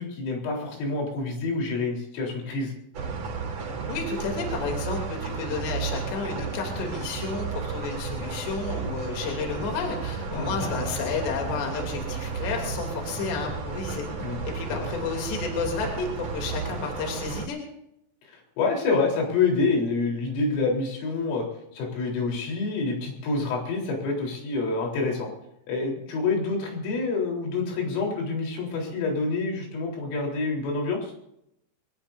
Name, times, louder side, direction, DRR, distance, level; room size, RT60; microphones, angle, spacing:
voice 1, 0.0-2.7 10.3-10.9 14.2-14.4 14.7-14.9 18.2-21.5 21.7-25.3 25.7-31.1, left 3 dB, 85° left, 0 dB, 6.6 m, -27 dB
sound 1, 2.9-17.5, right 5 dB, 40° right, 3.2 m, -33 dB
voice 2, 3.9-14.1 14.5-17.6, left 5 dB, 60° left, 1 dB, 5.0 m, -31 dB
23.5 x 20.0 x 2.7 m, 0.79 s
omnidirectional pair, 5.7 m